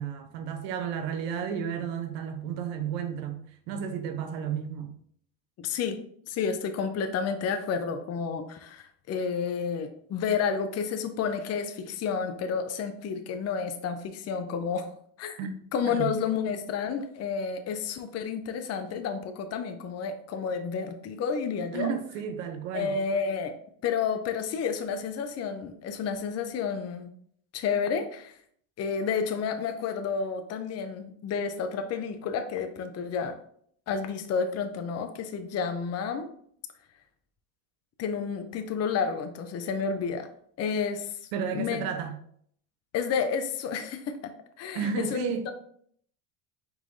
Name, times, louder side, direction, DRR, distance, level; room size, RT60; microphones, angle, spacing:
voice 1, 0.0-4.9 15.4-15.5 15.9-16.1 21.7-22.9 41.3-42.2 44.7-45.5, right 7 dB, 80° right, 0.9 m, -32 dB
voice 2, 5.6-6.0 6.3-14.9 15.2-15.4 15.7-21.9 22.7-23.5 23.8-27.1 27.5-28.4 28.8-33.4 33.9-36.3 38.0-40.3 40.6-41.2 41.5-41.8 42.9-44.3 44.6-45.5, left 6 dB, 35° left, 0.6 m, -30 dB
4.6 x 4.0 x 2.6 m
supercardioid pair, 100°, 48 cm